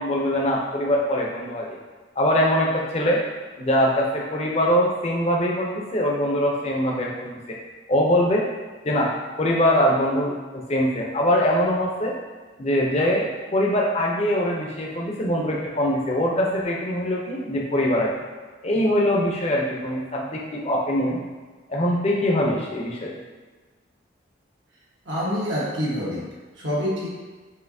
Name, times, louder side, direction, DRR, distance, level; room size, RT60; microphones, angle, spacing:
voice 1, 0.0-1.8 2.2-3.2 3.6-7.6 7.9-8.4 8.8-9.1 9.4-12.1 12.6-18.1 18.6-21.2 21.7-23.2, equal, 35° left, -2 dB, 0.6 m, -23 dB
voice 2, 25.1-26.2 26.6-27.1, equal, 80° right, -6 dB, 1.3 m, -26 dB
5.6 x 2.7 x 2.7 m, 1.4 s
head